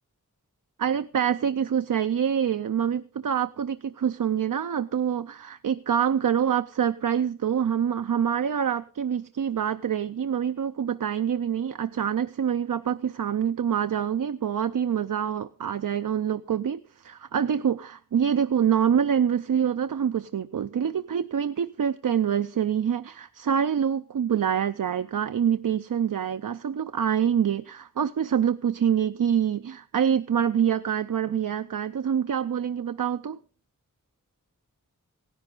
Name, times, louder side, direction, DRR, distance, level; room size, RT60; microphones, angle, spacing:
voice 1, 0.8-33.4, right 8 dB, 75° right, 0.5 m, -26 dB
16.0 x 11.0 x 3.9 m
wide cardioid pair, 50°, 33 cm